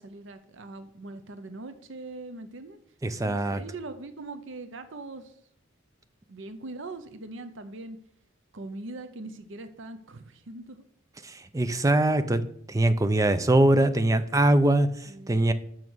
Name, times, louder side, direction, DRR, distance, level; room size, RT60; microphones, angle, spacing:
voice 1, 0.0-2.8 3.2-5.3 6.3-8.0 8.5-10.8 15.1-15.5, right 2 dB, 65° right, 10 dB, 0.7 m, -41 dB
voice 2, 3.0-3.6 11.2-15.5, right 1 dB, 15° right, 11 dB, 0.5 m, -23 dB
7.2 x 6.1 x 6.2 m, 0.67 s
head